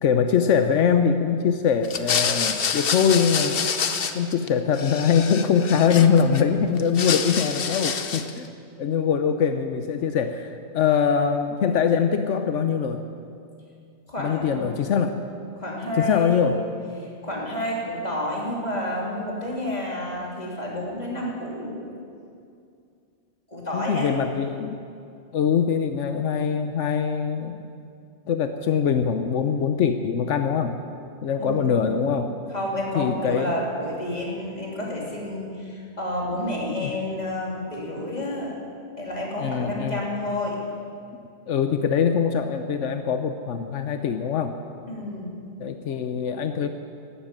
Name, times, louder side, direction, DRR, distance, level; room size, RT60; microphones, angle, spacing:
voice 1, 0.0-3.6 4.1-8.5 8.8-13.0 14.2-15.2 16.0-16.6 23.7-24.8 25.3-27.7 28.3-30.8 31.2-32.3 32.9-33.6 36.8-36.9 39.4-40.0 41.5-44.6 45.6-46.7, left 7 dB, 90° left, 7 dB, 1.1 m, -23 dB
sound 1, 1.8-4.5 4.7-6.4 6.8-8.4, left 6 dB, 55° left, 1.0 m, -27 dB
voice 2, 14.1-14.7 15.5-16.4 17.0-21.9 23.5-24.1 31.4-32.0 32.5-38.5 39.0-40.6 44.9-45.4, left 1 dB, 35° left, -4 dB, 3.4 m, -30 dB
12.5 x 12.5 x 9.0 m, 2.4 s
omnidirectional pair, 1.2 m